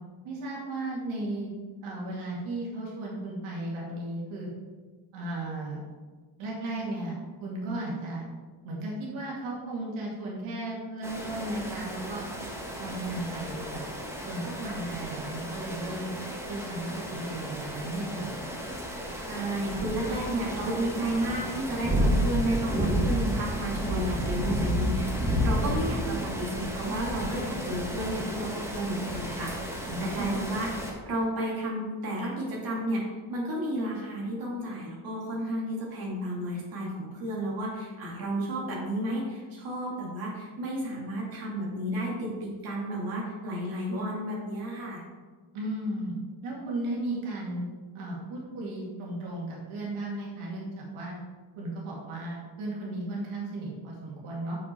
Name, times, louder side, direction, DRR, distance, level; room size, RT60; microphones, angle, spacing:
voice 1, 0.2-1.5 1.8-4.5 5.1-5.8 6.4-7.1 7.4-8.2 8.6-12.2 12.8-13.8 14.2-16.1 16.5-18.3 29.9-30.2 45.5-46.1 46.4-47.6 47.9-51.2 51.6-54.6, right 2 dB, 85° right, -4 dB, 2.4 m, -35 dB
sound 1, 11.0-30.9, equal, 5° right, 1.2 m, -32 dB
voice 2, 19.3-30.7 31.1-45.0, right 1 dB, 45° right, -4 dB, 2.5 m, -32 dB
7.0 x 6.5 x 4.4 m, 1.4 s
cardioid pair, 155°, 48 cm